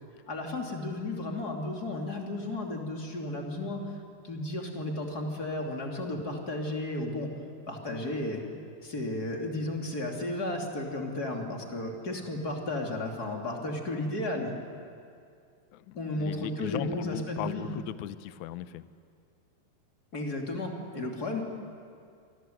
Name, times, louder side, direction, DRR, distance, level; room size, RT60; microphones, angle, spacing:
voice 1, 0.3-3.8 4.2-7.3 7.7-8.4 8.8-14.5 15.9-17.7 20.1-21.4, left 2 dB, 25° left, 1 dB, 2.9 m, -33 dB
voice 2, 15.7-18.9, left 13 dB, 80° left, 13 dB, 1.7 m, -38 dB
29.5 x 24.0 x 7.9 m, 2.3 s
omnidirectional pair, 4.5 m